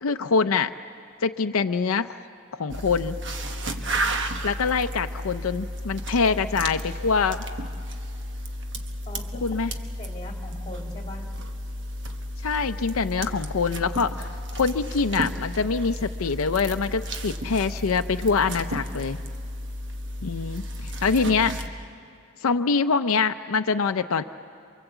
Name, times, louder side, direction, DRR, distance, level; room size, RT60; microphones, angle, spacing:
voice 1, 0.0-0.7 1.2-2.2 2.5-3.2 4.4-7.4 9.4-9.7 12.4-19.2 20.2-21.5 22.4-24.2, left 5 dB, 85° left, 9 dB, 0.6 m, -24 dB
sound 1, 2.7-21.7, equal, 60° right, 1.2 m, -33 dB
voice 2, 6.2-6.5 9.1-9.4 10.0-11.3, left 1 dB, 20° left, 1 dB, 2.5 m, -41 dB
28.0 x 23.5 x 8.1 m, 2.4 s
head